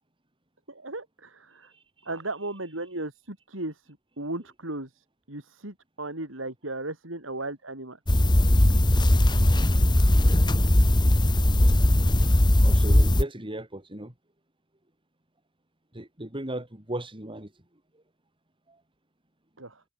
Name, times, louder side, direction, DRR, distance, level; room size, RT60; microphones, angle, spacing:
voice 1, 0.7-1.7 2.0-8.0 19.6-19.8, right 2 dB, 75° right, 6.7 m, -36 dB
voice 2, 1.7-2.1 12.6-14.1 15.9-17.5 18.7-18.8, right 1 dB, 25° right, 4.4 m, -36 dB
sound 1, 8.1-13.2, left 1 dB, 25° left, 1.1 m, -19 dB
head